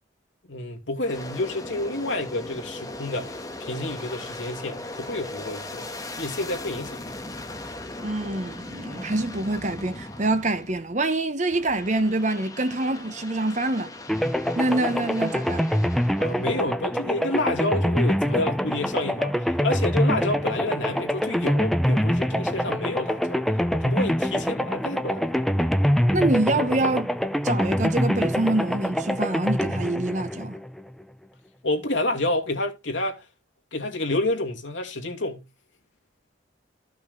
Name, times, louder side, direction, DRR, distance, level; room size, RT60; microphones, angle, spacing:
voice 1, 0.5-5.9 6.2-7.0 16.2-25.6 31.6-33.2 33.7-35.5, left 2 dB, 80° left, 2.3 m, -29 dB
Aircraft, 1.0-11.0 11.5-16.5, left 2 dB, 20° left, 1.3 m, -39 dB
voice 2, 8.0-13.9 14.5-15.7 26.1-27.1 27.4-30.6, right 2 dB, 40° right, 1.0 m, -25 dB
sound 1, 14.1-31.0, equal, ahead, 0.5 m, -25 dB
14.0 x 5.9 x 3.8 m
head